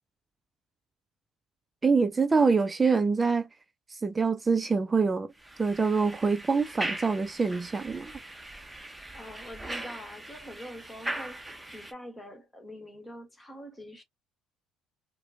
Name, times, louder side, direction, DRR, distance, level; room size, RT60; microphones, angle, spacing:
voice 1, 1.8-3.5 3.9-5.3 5.6-8.2, right 4 dB, 25° right, 0.5 m, -25 dB
sound 1, 5.4-11.9, right 1 dB, 10° right, 0.9 m, -40 dB
voice 2, 9.1-14.0, equal, 20° left, 1.5 m, -45 dB
4.2 x 2.2 x 2.5 m
hypercardioid pair, 65°, 0 cm